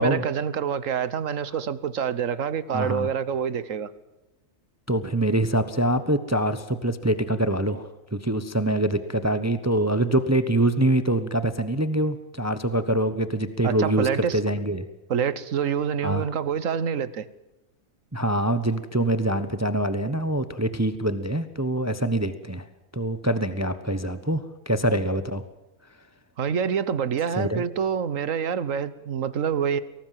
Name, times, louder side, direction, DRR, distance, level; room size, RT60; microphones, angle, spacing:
voice 1, 0.0-3.9 13.6-14.4 15.1-17.2 26.4-29.8, right 7 dB, 70° right, 16 dB, 1.5 m, -26 dB
voice 2, 2.7-3.1 4.9-14.9 16.0-16.3 18.1-22.6 22.9-25.4 27.4-27.6, right 1 dB, 15° right, 11 dB, 1.0 m, -24 dB
23.0 x 18.5 x 7.6 m, 1.0 s
omnidirectional pair, 1.4 m